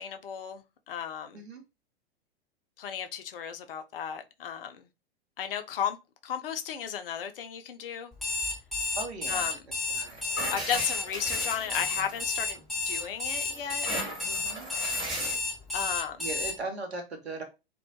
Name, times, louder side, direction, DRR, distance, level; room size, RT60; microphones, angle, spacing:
voice 1, 0.0-1.4 2.8-4.9 5.4-6.0 6.2-8.1 9.3-9.6 10.5-12.6 12.9-14.1 15.7-16.3, left 8 dB, 60° left, 0.5 m, -34 dB
Alarm, 8.1-16.5, left 3 dB, ahead, 0.4 m, -31 dB
voice 2, 9.0-9.5 9.9-10.2 14.2-14.7 16.2-17.4, right 3 dB, 80° right, 0.8 m, -38 dB
sound 1, 10.0-12.6 13.0-15.4, right 1 dB, 15° right, 1.1 m, -37 dB
2.2 x 2.1 x 2.7 m
figure-of-eight pair, 100°, 32 cm